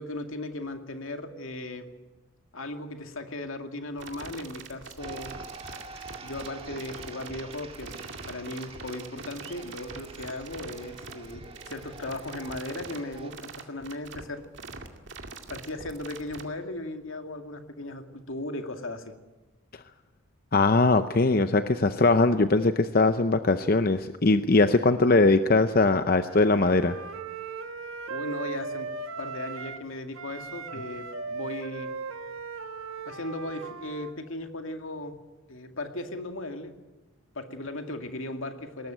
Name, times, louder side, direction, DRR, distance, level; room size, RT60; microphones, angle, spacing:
voice 1, 0.0-1.9 2.5-5.3 6.2-8.0 8.3-14.5 15.5-19.2 28.1-28.9 29.2-31.9 33.1-35.2 35.5-36.7 37.3-38.9, left 1 dB, 70° left, 6 dB, 2.2 m, -37 dB
sound 1, 4.0-16.4, right 4 dB, 55° right, 2.3 m, -43 dB
sound 2, 5.0-13.3, right 4 dB, 25° right, 1.8 m, -47 dB
voice 2, 20.5-27.0, left 3 dB, 45° left, 10 dB, 0.7 m, -21 dB
Wind instrument woodwind instrument, 26.2-29.9 30.1-34.1, right 4 dB, 80° right, 1.6 m, -38 dB
21.5 x 18.5 x 9.2 m, 1.1 s
head